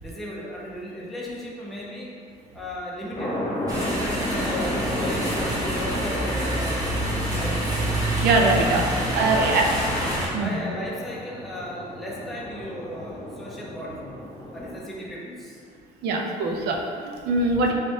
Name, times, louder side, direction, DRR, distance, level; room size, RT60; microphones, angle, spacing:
voice 1, 0.0-2.1 2.5-3.4 3.8-6.9 7.3-7.8 8.9-9.6 10.4-14.1 14.5-15.6, equal, ahead, -6 dB, 0.6 m, -36 dB
sound 1, 3.1-14.8, left 1 dB, 35° left, 1.0 m, -33 dB
sound 2, 3.7-10.3, right 1 dB, 20° right, 0.9 m, -27 dB
voice 2, 8.2-8.9 9.1-9.6 10.3-10.6 16.0-17.7, right 3 dB, 75° right, 1 dB, 0.5 m, -22 dB
3.1 x 3.1 x 2.7 m, 2.2 s
cardioid pair, 110°, 17 cm